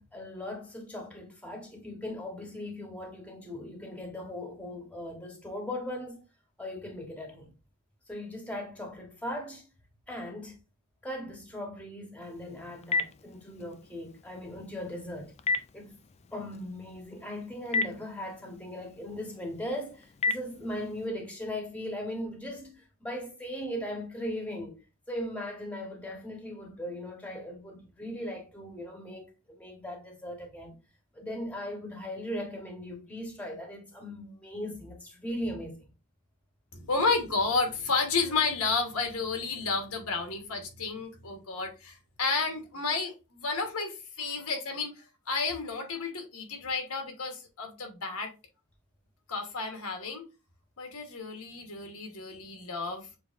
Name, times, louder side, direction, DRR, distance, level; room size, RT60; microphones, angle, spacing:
voice 1, 0.0-6.2 6.6-7.5 8.1-9.7 10.1-10.6 11.0-15.3 15.7-16.0 16.3-24.8 25.1-30.8 31.1-35.9, left 1 dB, 5° left, 1.1 m, -38 dB
Telephone, 12.2-21.1, left 3 dB, 30° left, 0.3 m, -36 dB
voice 2, 36.7-48.3 49.3-50.2 50.8-53.1, left 4 dB, 80° left, 1.2 m, -31 dB
6.9 x 2.9 x 2.5 m
head